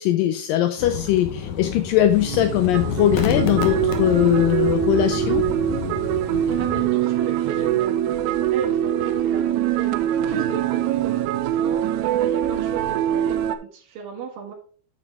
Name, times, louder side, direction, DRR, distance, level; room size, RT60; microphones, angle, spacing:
voice 1, 0.0-5.4, left 12 dB, 85° left, 8 dB, 1.9 m, -20 dB
sound 1, 0.8-6.9, left 7 dB, 65° left, 2.0 m, -29 dB
sound 2, 2.2-13.6, right 11 dB, 90° right, 2.8 m, -23 dB
voice 2, 6.6-14.5, right 6 dB, 65° right, -3 dB, 2.9 m, -34 dB
9.4 x 7.1 x 3.5 m, 0.43 s
omnidirectional pair, 4.6 m